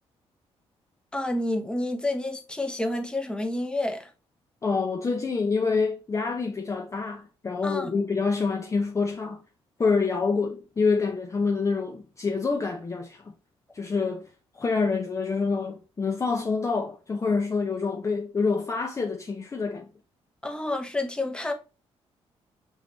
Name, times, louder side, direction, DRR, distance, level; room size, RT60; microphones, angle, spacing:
voice 1, 1.1-4.1 7.6-7.9 20.4-21.5, left 2 dB, 10° left, 0.9 m, -29 dB
voice 2, 4.6-9.4 9.8-13.3 13.7-14.3 14.5-19.9, left 4 dB, 30° left, 0.6 m, -27 dB
6.3 x 2.5 x 3.1 m
cardioid pair, 90°, 11 cm